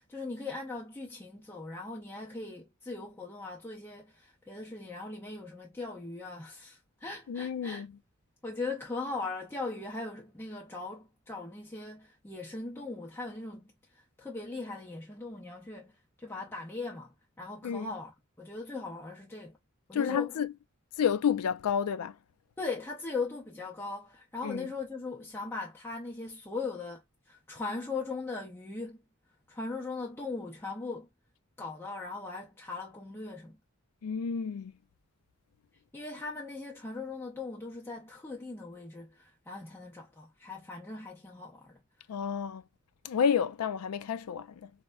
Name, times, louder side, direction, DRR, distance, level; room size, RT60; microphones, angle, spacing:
voice 1, 0.0-7.8 8.4-19.6 19.9-20.4 22.6-29.0 29.5-31.1 31.6-33.6 35.9-41.8, left 3 dB, 10° left, 0.5 m, -39 dB
voice 2, 7.3-7.9 17.6-17.9 19.9-20.5 21.0-22.2 24.4-24.7 34.0-34.7 42.1-42.6 43.0-44.7, left 7 dB, 85° left, 0.4 m, -30 dB
4.1 x 2.1 x 2.2 m
head